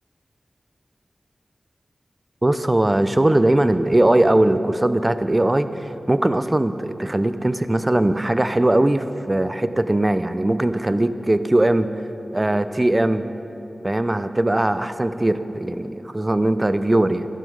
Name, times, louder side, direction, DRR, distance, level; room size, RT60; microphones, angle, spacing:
voice 1, 2.4-11.9 12.3-13.3 13.8-17.3, right 1 dB, 30° right, 11 dB, 0.6 m, -20 dB
12.5 x 11.5 x 5.4 m, 2.9 s
wide cardioid pair, 60°, 0 cm